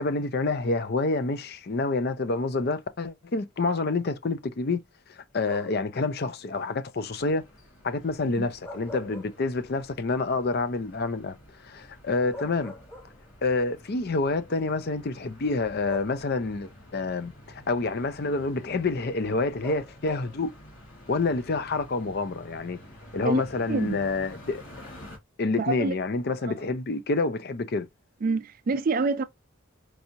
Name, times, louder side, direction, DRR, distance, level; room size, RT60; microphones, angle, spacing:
voice 1, 0.0-4.8 5.1-7.4 7.8-11.4 11.6-12.7 13.4-20.5 21.1-22.8 23.1-24.6 25.4-27.9, left 3 dB, 50° left, 0.5 m, -28 dB
sound 1, 5.4-5.9 8.4-9.8 10.2-10.3 11.8-11.9 12.3-13.5 14.5-14.6 15.9-16.6 19.6-20.5, left 1 dB, 10° left, 0.9 m, -43 dB
sound 2, 7.0-25.2, equal, 70° left, 1.6 m, -49 dB
voice 2, 25.6-26.0 26.5-26.6 28.2-29.2, right 3 dB, 45° right, 0.4 m, -26 dB
4.6 x 2.7 x 2.8 m
head